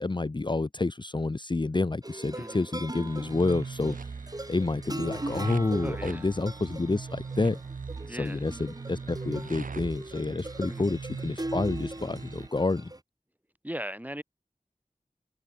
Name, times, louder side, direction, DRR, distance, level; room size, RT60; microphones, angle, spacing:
voice 1, 0.0-4.0 4.5-7.6 8.1-12.9, left 3 dB, 35° left, 0.6 m, -29 dB
sound 1, 2.0-13.0, right 1 dB, 30° right, 1.9 m, -40 dB
voice 2, 2.3-2.7 5.8-6.3 8.1-8.4 10.7-10.9 13.6-14.2, equal, 10° right, 2.5 m, -38 dB
sound 2, 3.0-12.5, right 5 dB, 80° right, 0.6 m, -40 dB
wide cardioid pair, 45°, 14 cm